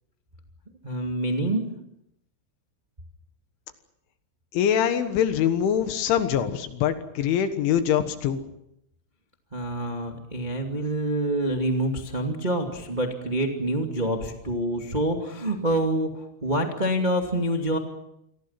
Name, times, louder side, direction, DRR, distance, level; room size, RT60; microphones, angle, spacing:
voice 1, 0.8-1.6 9.5-17.8, right 1 dB, 65° right, 2 dB, 0.4 m, -26 dB
voice 2, 4.5-8.4, left 9 dB, 70° left, 9 dB, 3.6 m, -23 dB
29.0 x 22.5 x 5.9 m, 0.81 s
omnidirectional pair, 6.0 m